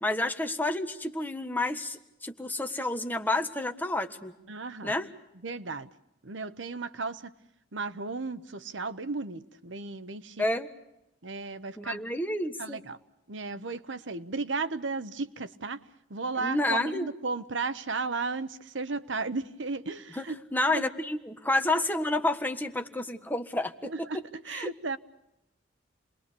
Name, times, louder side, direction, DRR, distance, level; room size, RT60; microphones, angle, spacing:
voice 1, 0.0-4.3 4.8-5.1 10.4-10.7 11.8-12.8 16.4-17.1 20.2-20.3 20.5-24.1 24.5-24.7, left 2 dB, 10° left, 6 dB, 1.6 m, -30 dB
voice 2, 4.5-4.9 5.4-5.9 6.2-7.3 7.7-10.4 11.2-12.0 12.6-13.0 13.3-15.8 16.1-20.4 20.7-20.9 23.8-25.0, right 3 dB, 80° right, 13 dB, 1.1 m, -34 dB
29.0 x 22.0 x 6.9 m, 0.87 s
head